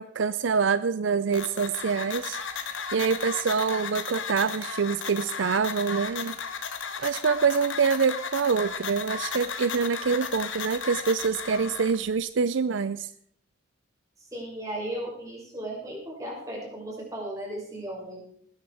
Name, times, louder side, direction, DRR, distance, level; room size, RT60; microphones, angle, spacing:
voice 1, 0.0-2.4 2.9-6.4 7.0-13.1, right 5 dB, 70° right, 15 dB, 0.5 m, -26 dB
sound 1, 1.3-12.0, left 6 dB, 80° left, 1.8 m, -35 dB
voice 2, 14.2-18.2, right 1 dB, 15° right, -4 dB, 6.4 m, -36 dB
19.5 x 10.5 x 4.9 m, 0.63 s
head